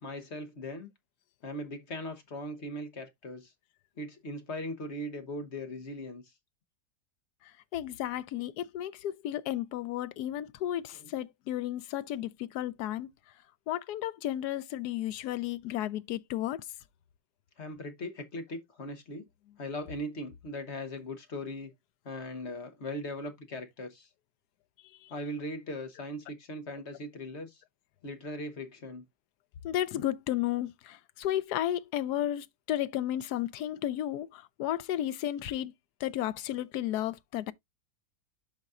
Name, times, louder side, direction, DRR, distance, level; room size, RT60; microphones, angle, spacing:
voice 1, 0.0-0.9 1.4-3.5 4.0-6.2 11.0-11.1 17.6-19.2 19.6-21.7 22.0-24.1 25.1-27.6 28.0-29.0, left 1 dB, 50° left, 1.3 m, -39 dB
voice 2, 7.4-13.1 13.7-16.7 25.0-25.1 29.6-35.7 36.0-37.5, left 12 dB, 85° left, 1.2 m, -33 dB
11.5 x 4.1 x 2.4 m
omnidirectional pair, 1.6 m